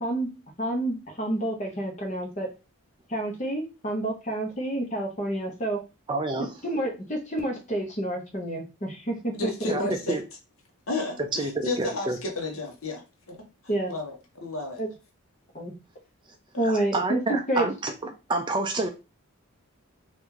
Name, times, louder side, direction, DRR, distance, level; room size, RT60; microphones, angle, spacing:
voice 1, 0.0-0.3 0.6-2.5 3.1-5.8 6.6-9.9 13.7-13.9 14.8-14.9 15.5-15.7 16.6-17.7, right 1 dB, 30° left, 1 dB, 0.9 m, -29 dB
voice 2, 6.1-6.5 9.7-10.2 11.3-12.2 16.6-17.9 18.3-18.9, right 2 dB, 20° right, 5 dB, 0.3 m, -28 dB
voice 3, 9.3-10.2 10.9-13.4 13.9-14.8 16.5-16.6, left 2 dB, 70° left, 2 dB, 1.0 m, -32 dB
2.9 x 2.5 x 3.6 m, 0.29 s
head